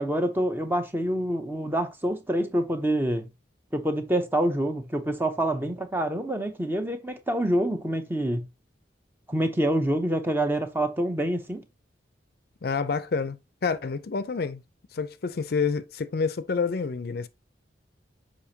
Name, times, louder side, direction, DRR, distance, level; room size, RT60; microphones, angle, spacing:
voice 1, 0.0-3.3 3.7-8.4 9.3-11.6, right 1 dB, 10° right, 0.7 m, -26 dB
voice 2, 12.6-13.4 13.6-14.6 14.9-17.3, left 5 dB, 55° left, 0.5 m, -28 dB
7.0 x 5.0 x 2.8 m
head